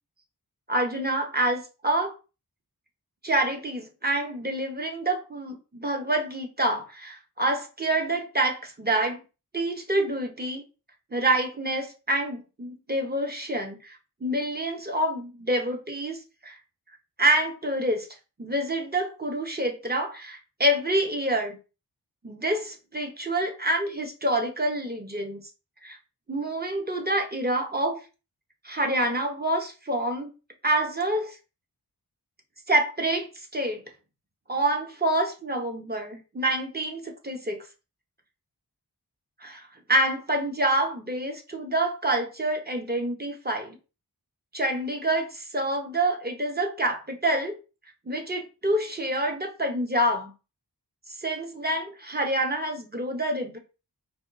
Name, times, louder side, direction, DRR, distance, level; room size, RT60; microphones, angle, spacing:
voice 1, 0.7-2.1 3.2-9.2 9.5-10.6 11.1-16.6 17.2-18.1 18.4-21.6 22.2-25.4 25.8-26.0 26.3-28.0 28.6-30.3 30.6-31.4 32.7-33.8 34.5-37.6 39.4-43.8 44.5-47.6 48.1-50.3 51.2-53.6, right 1 dB, 25° right, 0.7 m, -27 dB
4.2 x 2.2 x 2.4 m
wide cardioid pair, 50°, 40 cm